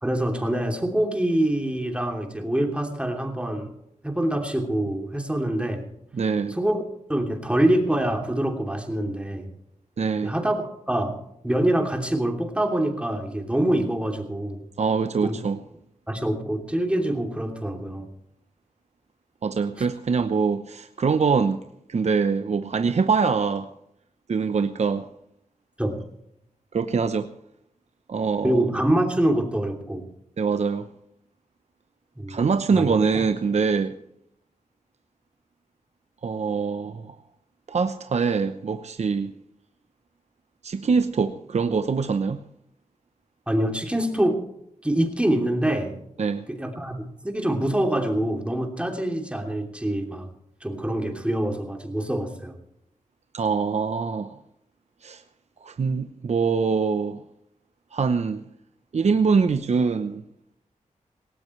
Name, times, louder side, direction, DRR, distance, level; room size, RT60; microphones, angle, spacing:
voice 1, 0.0-3.7 4.0-5.9 6.5-6.8 7.1-9.5 10.2-10.6 10.9-11.1 11.4-14.6 15.2-15.3 16.1-18.1 19.8-19.9 25.8-26.0 28.4-30.0 32.2-32.4 32.7-32.9 43.5-44.4 44.8-45.9 46.5-50.3 50.6-52.5, right 1 dB, 10° right, 2.9 m, -25 dB
voice 2, 6.1-6.6 10.0-10.4 14.8-15.6 19.4-21.6 21.9-23.7 24.3-25.1 26.7-27.3 28.1-28.6 30.4-30.9 32.3-33.9 36.2-37.1 37.7-39.3 40.6-42.4 46.2-46.5 53.3-54.4 55.0-55.2 55.6-57.2 57.9-58.4 58.9-60.2, right 5 dB, 55° right, 0.8 m, -24 dB
18.5 x 18.5 x 3.2 m
wide cardioid pair, 100°, 13 cm